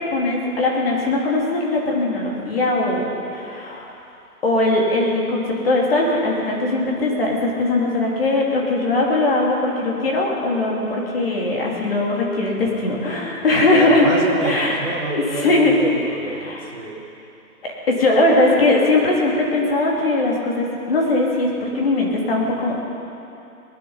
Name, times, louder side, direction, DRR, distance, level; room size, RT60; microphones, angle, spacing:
voice 1, 0.1-3.9 4.4-14.1 14.4-14.8 15.1-15.7 16.4-16.7 17.9-22.8, left 2 dB, 35° left, -2 dB, 3.1 m, -20 dB
voice 2, 13.7-17.0, right 3 dB, 50° right, -3 dB, 3.0 m, -28 dB
20.0 x 12.5 x 5.6 m, 2.7 s
hypercardioid pair, 170°, 47 cm